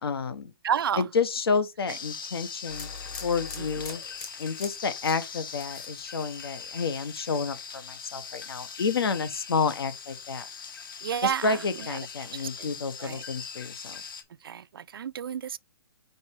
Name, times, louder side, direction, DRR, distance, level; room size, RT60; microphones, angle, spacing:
voice 1, 0.0-0.5 1.0-2.9 3.2-4.0 4.4-10.5 11.2-14.0, left 5 dB, 75° left, 1.4 m, -30 dB
voice 2, 0.6-1.0 11.0-11.5 12.6-12.7 13.0-13.2 14.4-15.6, right 8 dB, 65° right, 0.4 m, -29 dB
sound 1, 1.9-14.2, left 6 dB, 60° left, 1.4 m, -41 dB
sound 2, 2.7-6.7 7.0-7.5, left 4 dB, 15° left, 0.9 m, -43 dB
5.4 x 4.8 x 4.6 m
hypercardioid pair, 180°, 13 cm